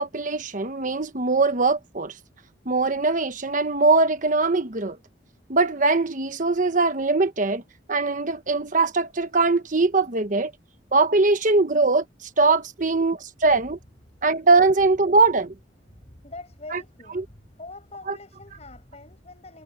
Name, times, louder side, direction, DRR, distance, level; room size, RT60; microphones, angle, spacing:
voice 1, 0.0-2.1 2.6-5.0 5.5-7.6 7.9-10.5 10.9-12.0 12.4-13.8 14.2-15.5 16.7-16.8 17.1-17.2 18.1-18.2, right 3 dB, 45° right, 1.2 m, -21 dB
voice 2, 16.2-17.3 17.6-19.6, left 2 dB, 35° left, 7.2 m, -43 dB
head